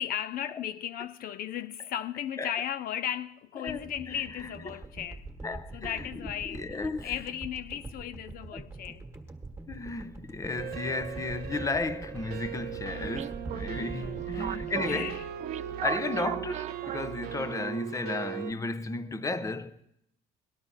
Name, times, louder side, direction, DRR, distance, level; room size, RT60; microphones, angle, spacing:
voice 1, 0.0-9.1 13.8-15.3 15.6-15.7, left 10 dB, 60° left, 0.4 m, -36 dB
voice 2, 3.6-4.5 5.4-5.9 6.5-7.1 9.7-15.2 15.8-19.8, left 3 dB, 20° left, 0.6 m, -34 dB
sound 1, 3.7-16.0 16.3-16.4, right 2 dB, 15° right, 1.5 m, -44 dB
sound 2, 10.6-18.5, right 12 dB, 70° right, 0.8 m, -38 dB
sound 3, 12.6-17.7, right 11 dB, 45° right, 0.4 m, -39 dB
18.5 x 12.0 x 3.9 m
cardioid pair, 110°, 17 cm